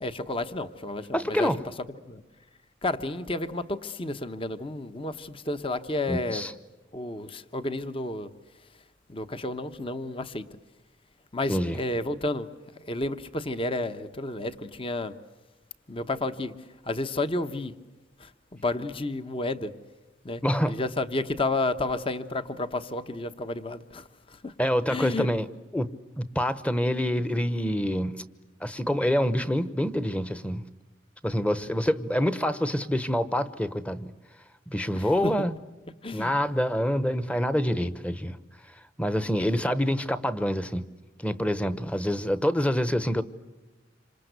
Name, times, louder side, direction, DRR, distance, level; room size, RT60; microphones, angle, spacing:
voice 1, 0.0-1.5 2.1-2.2 2.8-6.5 6.9-8.3 9.1-10.5 11.3-12.5 12.8-15.1 15.9-16.5 16.9-17.7 18.2-19.7 20.2-24.0 24.4-24.5 24.9-25.3 34.9-35.3 36.0-36.3, left 2 dB, 30° left, 11 dB, 1.0 m, -31 dB
voice 2, 1.1-1.6 6.1-6.5 11.5-11.8 20.4-20.8 24.6-25.5 25.7-25.9 26.2-28.2 28.6-30.6 31.2-34.1 34.7-35.5 36.1-38.4 39.0-40.9 41.2-43.2, equal, 5° left, 14 dB, 1.0 m, -26 dB
27.5 x 26.0 x 8.1 m, 1.1 s
head